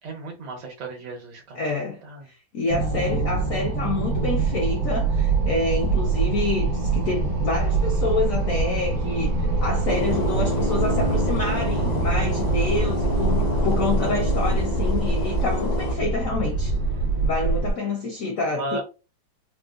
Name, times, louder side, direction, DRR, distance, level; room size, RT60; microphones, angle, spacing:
voice 1, 0.0-1.6 2.0-2.3 18.5-18.8, right 2 dB, 80° right, 1.9 m, -34 dB
voice 2, 1.5-2.0 2.5-16.7 17.2-18.8, left 3 dB, 70° left, 0.8 m, -27 dB
sound 1, 2.7-17.7, right 3 dB, 60° right, 0.8 m, -24 dB
sound 2, 9.8-16.0, left 2 dB, 45° left, 0.5 m, -29 dB
4.5 x 2.1 x 2.3 m
omnidirectional pair, 2.0 m